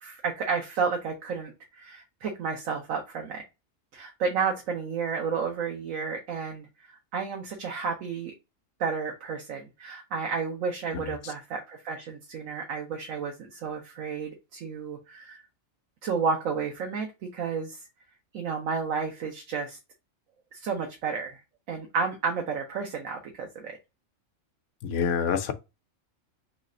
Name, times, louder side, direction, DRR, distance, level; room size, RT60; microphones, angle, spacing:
voice 1, 0.0-3.4 3.9-8.3 8.8-15.4 16.0-17.8 18.3-19.8 20.5-21.4 21.7-23.8, right 5 dB, 80° right, 1.1 m, -31 dB
voice 2, 24.8-25.5, left 7 dB, 70° left, 0.9 m, -27 dB
3.2 x 3.2 x 3.7 m
omnidirectional pair, 1.4 m